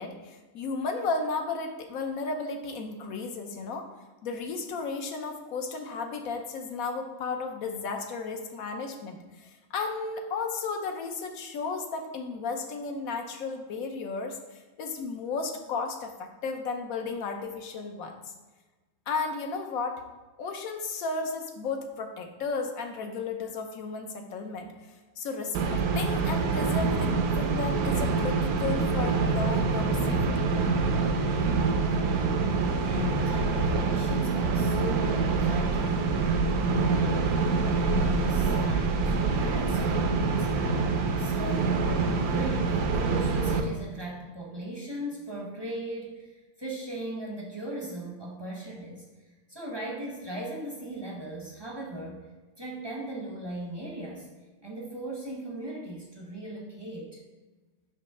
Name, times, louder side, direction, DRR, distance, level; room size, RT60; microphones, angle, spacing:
voice 1, 0.0-3.9 4.2-18.1 19.1-20.0 20.4-30.5, left 4 dB, 65° left, 4 dB, 0.9 m, -34 dB
sound 1, 25.5-43.6, right 4 dB, 65° right, 1.0 m, -26 dB
voice 2, 31.7-37.4 37.8-40.5 41.2-42.0 42.3-49.0 49.5-52.3 52.6-54.3 54.6-57.2, right 1 dB, 20° right, -3 dB, 0.6 m, -38 dB
7.2 x 3.2 x 5.5 m, 1.3 s
omnidirectional pair, 2.1 m